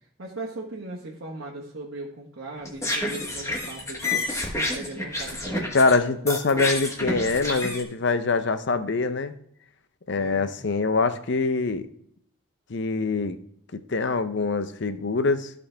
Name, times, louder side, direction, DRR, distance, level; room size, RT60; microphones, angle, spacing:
voice 1, 0.0-5.8 10.2-10.6, right 2 dB, 65° right, -3 dB, 1.4 m, -38 dB
sound 1, 2.6-6.0 6.3-7.8, left 2 dB, 15° left, 1.2 m, -29 dB
voice 2, 5.7-9.3 10.1-11.9 12.7-13.4 13.7-15.5, left 3 dB, 55° left, 11 dB, 0.6 m, -24 dB
14.0 x 5.3 x 3.4 m, 0.71 s
head